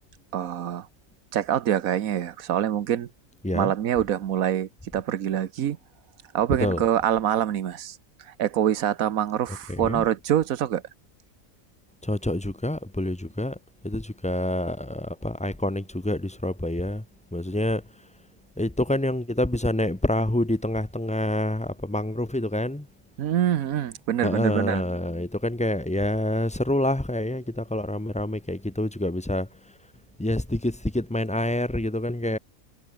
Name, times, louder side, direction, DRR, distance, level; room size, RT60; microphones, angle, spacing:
voice 1, 0.3-0.9 1.3-3.1 3.5-5.8 6.3-8.0 8.3-10.8 23.2-24.8, right 10 dB, 90° right, 1.3 m, -25 dB
voice 2, 9.7-10.0 12.0-13.6 13.8-17.0 17.3-17.8 18.6-22.9 24.2-29.5 30.2-32.4, left 1 dB, 5° left, 0.6 m, -27 dB
omnidirectional pair, 1.4 m